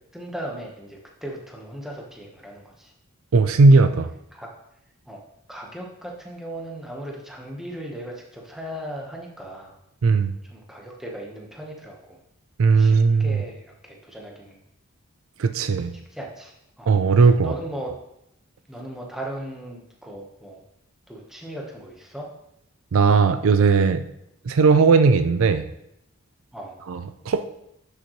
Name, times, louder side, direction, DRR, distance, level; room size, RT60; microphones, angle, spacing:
voice 1, 0.1-2.9 4.3-4.5 5.1-5.2 5.5-9.8 10.5-12.2 12.8-14.6 15.9-16.9 17.4-17.9 18.7-20.6 21.1-22.3 26.5-26.8, right 1 dB, ahead, -1 dB, 1.1 m, -37 dB
voice 2, 3.3-4.1 10.0-10.3 12.6-13.4 15.4-15.9 16.9-17.5 22.9-24.1 24.5-25.7 26.9-27.5, right 4 dB, 70° right, 10 dB, 0.4 m, -17 dB
10.5 x 6.5 x 3.1 m, 0.81 s
head